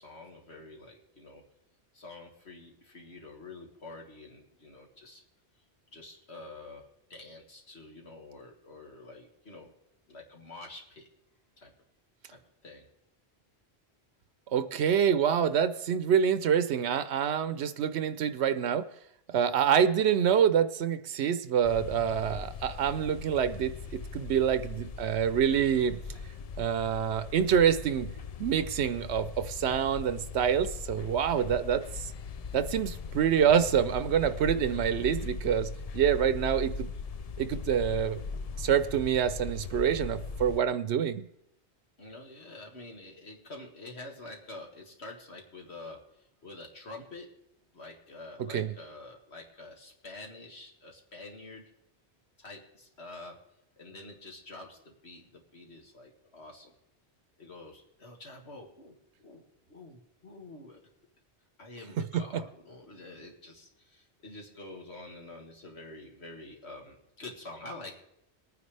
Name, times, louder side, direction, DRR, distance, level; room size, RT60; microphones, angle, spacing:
voice 1, 0.0-1.4 1.9-5.2 5.9-9.7 10.1-11.1 11.6-11.7 12.3-12.9 42.0-47.3 47.7-51.7 52.4-53.4 53.8-56.7 57.4-59.4 59.7-60.8 61.6-68.0, left 2 dB, 75° left, 1 dB, 2.3 m, -47 dB
voice 2, 14.5-18.9 19.3-26.0 26.6-28.1 28.4-32.1 32.5-36.9 37.4-38.2 38.6-41.3 48.4-48.7 62.1-62.4, right 8 dB, 85° right, 12 dB, 0.9 m, -26 dB
sound 1, 21.6-40.6, left 4 dB, 50° left, 0.4 m, -40 dB
22.5 x 9.5 x 3.3 m, 0.79 s
omnidirectional pair, 1.1 m